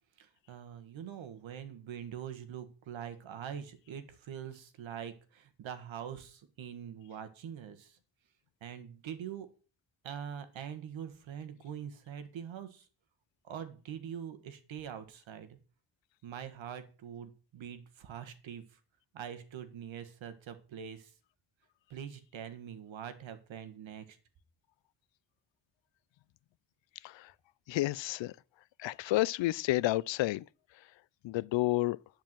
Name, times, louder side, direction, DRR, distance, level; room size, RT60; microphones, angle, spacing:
voice 1, 0.2-8.0 8.6-9.5 10.0-12.8 13.4-15.6 16.2-18.6 19.1-21.1 21.9-24.2, right 8 dB, 75° right, 1.7 m, -44 dB
voice 2, 27.7-28.3 28.8-30.4 31.2-32.0, left 17 dB, 70° left, 0.5 m, -30 dB
10.5 x 4.8 x 7.5 m
cardioid pair, 100°, 47 cm